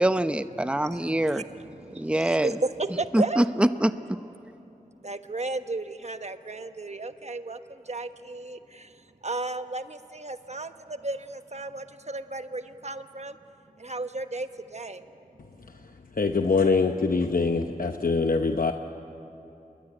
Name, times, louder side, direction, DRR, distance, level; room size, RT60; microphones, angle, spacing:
voice 1, 0.0-1.4 2.0-2.5 3.1-3.9, right 1 dB, 5° right, 11 dB, 0.7 m, -24 dB
voice 2, 0.6-3.5 5.0-9.0 9.2-13.4 13.8-15.0, right 2 dB, 50° right, 9 dB, 1.2 m, -34 dB
voice 3, 15.8-18.7, left 4 dB, 70° left, 6 dB, 0.9 m, -24 dB
26.0 x 21.5 x 10.0 m, 2.9 s
wide cardioid pair, 45°, 15 cm